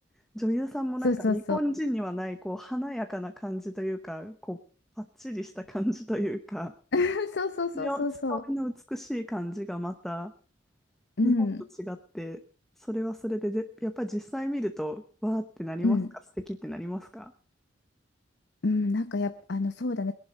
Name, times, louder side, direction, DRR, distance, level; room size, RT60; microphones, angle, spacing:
voice 1, 0.3-4.6 5.0-6.7 7.7-10.3 11.2-11.3 11.8-12.4 12.8-16.0 16.5-17.3, equal, ahead, 7 dB, 0.8 m, -32 dB
voice 2, 1.0-1.6 6.9-8.4 11.2-11.6 15.8-16.1 18.6-20.1, left 3 dB, 65° left, 9 dB, 0.8 m, -27 dB
21.0 x 11.0 x 5.2 m, 0.44 s
head